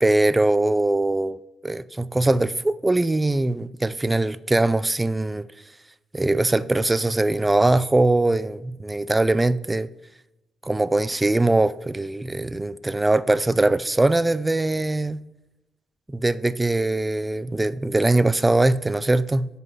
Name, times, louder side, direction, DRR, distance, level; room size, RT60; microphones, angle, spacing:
voice 1, 0.0-1.4 1.6-5.5 6.1-9.9 10.6-15.2 16.1-19.5, right 2 dB, 15° right, 0.4 m, -21 dB
8.2 x 5.4 x 4.6 m
cardioid pair, 90°, 0 cm